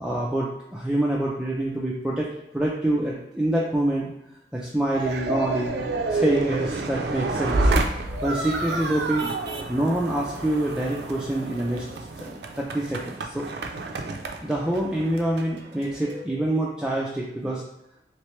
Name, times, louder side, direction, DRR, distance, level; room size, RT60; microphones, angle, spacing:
voice 1, 0.0-2.3 2.5-4.1 4.5-5.8 6.1-9.3 9.7-11.8 12.2-13.4 14.4-17.6, right 1 dB, 5° right, -5 dB, 0.3 m, -26 dB
sound 1, 4.9-16.2, right 2 dB, 65° right, 0.4 m, -29 dB
3.2 x 3.1 x 3.0 m, 0.84 s
head